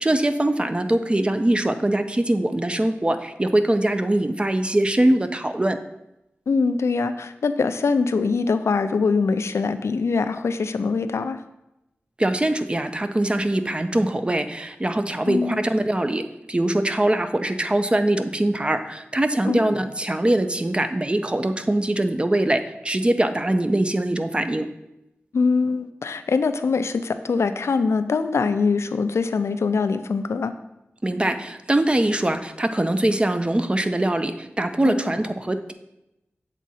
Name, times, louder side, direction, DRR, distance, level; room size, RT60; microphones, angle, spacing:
voice 1, 0.0-5.8 12.2-24.7 31.0-35.7, right 1 dB, 25° right, 9 dB, 0.4 m, -22 dB
voice 2, 6.5-11.4 15.3-15.6 19.5-19.7 25.3-30.5 34.8-35.1, left 4 dB, 80° left, 10 dB, 0.3 m, -23 dB
7.3 x 3.7 x 4.1 m, 0.89 s
wide cardioid pair, 75°, 5 cm